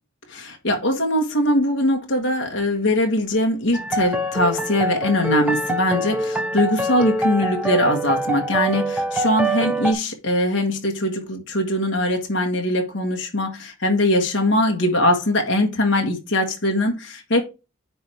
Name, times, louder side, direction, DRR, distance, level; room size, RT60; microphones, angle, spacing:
voice 1, 0.3-17.4, left 1 dB, 55° left, 1.5 m, -21 dB
sound 1, 3.7-9.9, right 1 dB, 5° right, 0.7 m, -25 dB
9.3 x 3.4 x 4.4 m
head